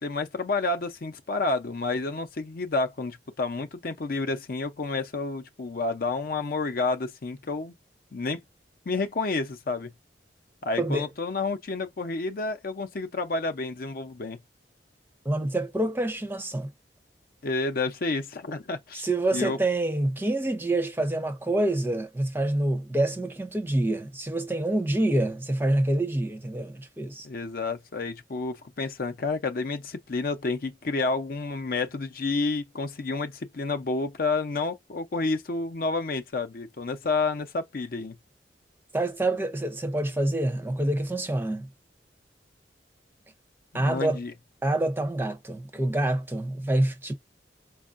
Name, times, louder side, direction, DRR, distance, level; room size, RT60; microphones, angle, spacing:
voice 1, 0.0-7.7 8.1-8.4 8.9-9.9 10.6-14.4 17.4-19.0 19.3-19.6 27.2-38.2 43.8-44.3, left 3 dB, 55° left, 0.6 m, -30 dB
voice 2, 10.8-11.1 15.2-16.7 18.9-27.3 38.9-41.7 43.7-44.2 44.6-47.1, right 1 dB, 10° right, 0.5 m, -26 dB
4.4 x 2.3 x 2.4 m
head